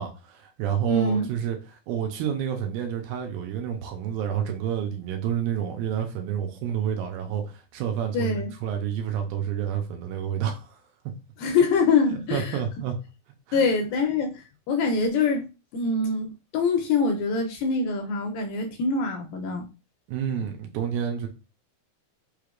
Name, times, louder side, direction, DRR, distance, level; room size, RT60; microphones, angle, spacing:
voice 1, 0.0-10.7 12.1-13.0 13.5-13.6 20.1-21.3, right 9 dB, 80° right, 2.4 m, -29 dB
voice 2, 0.9-1.3 8.1-8.5 11.4-12.6 13.5-15.5 15.7-19.7, left 4 dB, 80° left, 2.2 m, -24 dB
5.7 x 3.3 x 2.4 m
omnidirectional pair, 4.5 m